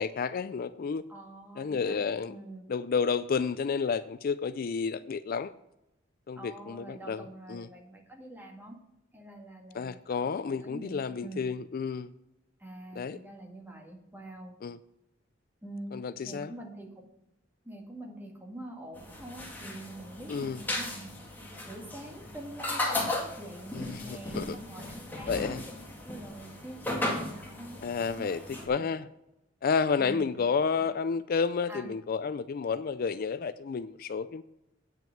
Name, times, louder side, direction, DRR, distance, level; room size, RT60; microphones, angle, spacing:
voice 1, 0.0-1.0 1.6-2.3 2.7-5.5 6.3-7.2 7.5-7.7 9.8-12.1 13.0-13.2 14.6-14.8 15.9-16.5 20.3-20.6 23.7-24.6 25.3-25.6 27.8-28.4 28.7-29.0 29.6-34.4, left 5 dB, 50° left, 0.4 m, -31 dB
voice 2, 1.1-2.0 2.3-2.6 6.4-8.8 9.1-11.5 12.6-14.5 15.6-15.9 16.2-16.9 17.6-21.1 21.7-25.6 26.0-27.8 28.2-28.9 30.0-30.4 30.7-30.8 31.7-31.9, right 1 dB, 10° right, 2.0 m, -45 dB
sound 1, 18.9-28.7, left 1 dB, 10° left, 1.9 m, -36 dB
9.0 x 5.8 x 7.6 m
head